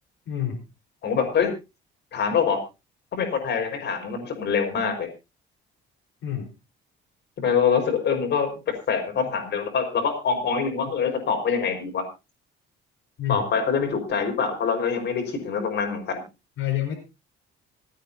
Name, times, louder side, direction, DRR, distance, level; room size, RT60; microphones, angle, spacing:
voice 1, 0.3-0.6 6.2-6.5 13.2-13.4 16.6-16.9, left 11 dB, 75° left, 0 dB, 4.6 m, -27 dB
voice 2, 1.0-1.5 2.1-2.6 3.1-5.1 7.4-8.5 8.9-12.0 13.3-16.2, left 6 dB, 55° left, 3 dB, 5.3 m, -24 dB
27.0 x 9.2 x 2.8 m, 0.27 s
cardioid pair, 125°, 21 cm